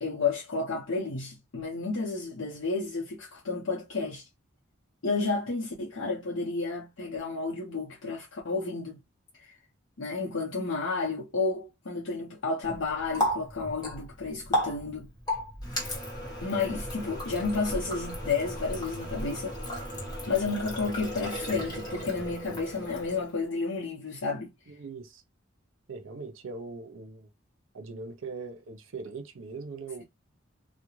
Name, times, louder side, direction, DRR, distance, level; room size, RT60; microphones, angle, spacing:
voice 1, 0.0-4.3 5.0-9.0 9.4-9.5 10.0-15.1 16.4-19.6 20.3-24.5, left 4 dB, 70° left, 0.7 m, -31 dB
Water tap faucet, 12.6-23.4, equal, 20° left, 1.0 m, -35 dB
voice 2, 24.7-25.2 25.9-27.3 27.7-30.0, right 4 dB, 75° right, 0.6 m, -40 dB
2.4 x 2.1 x 3.0 m
head